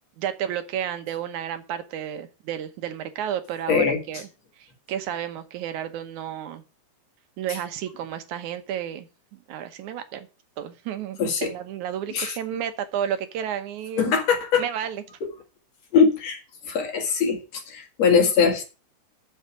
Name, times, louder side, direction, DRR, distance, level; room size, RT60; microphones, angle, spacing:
voice 1, 0.2-4.3 4.6-6.6 7.4-10.3 10.6-14.1 14.6-15.0, right 10 dB, 85° right, 2.5 m, -32 dB
voice 2, 3.7-4.0 11.2-11.5 12.1-12.4 14.0-14.6 15.2-15.3 15.9-16.4 16.7-18.6, left 6 dB, 65° left, 3.0 m, -21 dB
7.3 x 6.9 x 8.2 m
omnidirectional pair, 3.3 m